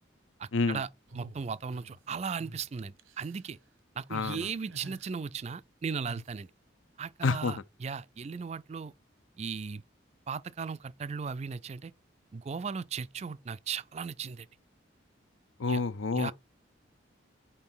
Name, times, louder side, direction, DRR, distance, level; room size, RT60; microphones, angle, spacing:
voice 1, 0.4-0.9 1.1-3.6 4.0-6.5 7.0-8.9 9.4-9.8 10.3-11.9 12.3-14.5 15.7-15.8 16.1-16.3, right 5 dB, 35° right, 0.3 m, -37 dB
sound 1, 1.1-2.0 2.4-2.6 3.0-3.5 4.1-5.1 6.0-6.4, right 2 dB, 85° right, 1.1 m, -48 dB
voice 2, 4.1-4.5 7.2-7.6 15.6-16.3, left 4 dB, 80° left, 0.6 m, -28 dB
5.5 x 4.3 x 6.0 m
head